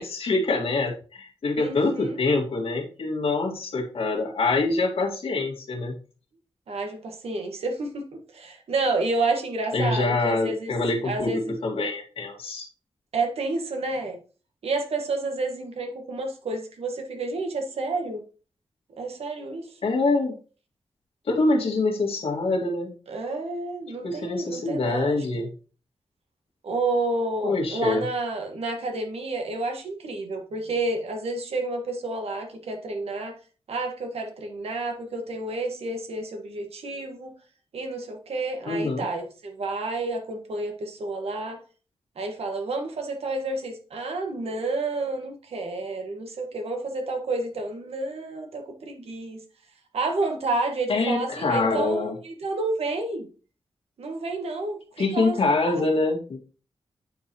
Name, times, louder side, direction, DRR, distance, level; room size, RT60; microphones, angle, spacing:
voice 1, 0.0-5.9 9.7-12.6 19.8-20.4 21.3-22.9 24.0-25.5 27.4-28.0 38.7-39.1 50.9-52.1 55.0-56.4, left 3 dB, 75° left, 0 dB, 1.9 m, -25 dB
voice 2, 1.5-2.2 6.7-10.7 11.0-11.5 13.1-14.2 14.6-18.2 19.0-19.7 23.1-25.2 26.6-33.4 33.7-37.3 37.7-41.6 42.1-49.4 49.9-53.3 54.0-55.8, right 2 dB, 90° right, 3 dB, 1.5 m, -30 dB
9.2 x 4.7 x 3.0 m, 0.37 s
wide cardioid pair, 110°, 10 cm